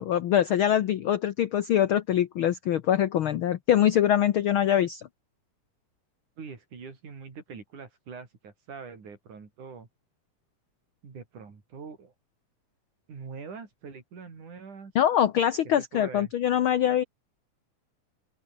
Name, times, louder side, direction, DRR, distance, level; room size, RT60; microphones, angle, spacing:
voice 1, 0.0-5.1 14.9-17.0, left 10 dB, 75° left, 1.2 m, -23 dB
voice 2, 6.4-9.9 11.0-12.1 13.1-14.9 15.8-16.3, right 5 dB, 75° right, 6.0 m, -43 dB
open air
omnidirectional pair, 3.5 m